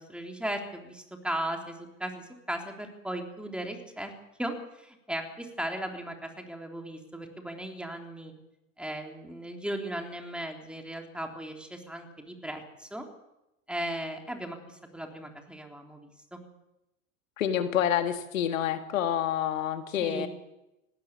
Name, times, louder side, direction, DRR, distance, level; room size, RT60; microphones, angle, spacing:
voice 1, 0.0-4.1 4.4-8.3 8.8-13.0 13.7-16.4 20.0-20.3, right 1 dB, ahead, 3 dB, 3.5 m, -37 dB
voice 2, 17.4-20.3, left 10 dB, 70° left, 9 dB, 1.7 m, -28 dB
19.5 x 16.0 x 8.4 m, 0.92 s
hypercardioid pair, 85°, 41 cm